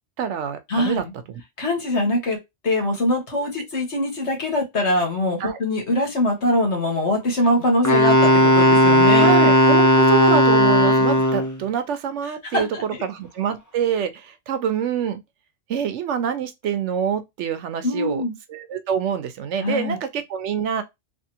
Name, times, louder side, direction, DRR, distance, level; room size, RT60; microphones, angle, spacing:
voice 1, 0.2-1.4 5.4-5.6 9.2-15.2 15.7-18.2 18.5-20.8, right 8 dB, 85° right, 1.0 m, -26 dB
voice 2, 0.7-1.0 1.6-2.4 2.6-9.3 12.5-12.8 17.8-18.4 19.6-20.0, left 1 dB, 75° left, 1.6 m, -23 dB
Wind instrument woodwind instrument, 7.8-11.6, equal, 25° left, 0.5 m, -15 dB
3.4 x 2.6 x 2.8 m
omnidirectional pair, 1.2 m